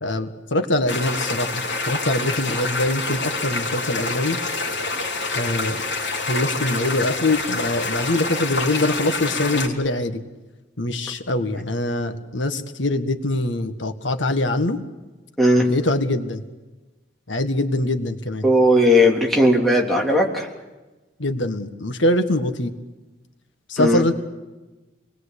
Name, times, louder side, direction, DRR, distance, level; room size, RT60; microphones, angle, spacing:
voice 1, 0.0-4.4 5.3-5.8 6.3-10.2 10.8-14.8 15.7-16.4 17.3-18.5 21.2-22.7 23.7-24.1, left 1 dB, 85° left, 7 dB, 1.7 m, -23 dB
sound 1, 0.9-9.7, left 3 dB, 70° left, 3.7 m, -27 dB
voice 2, 18.4-20.5 23.8-24.0, left 1 dB, ahead, -2 dB, 3.3 m, -17 dB
28.0 x 20.5 x 8.4 m, 1.2 s
head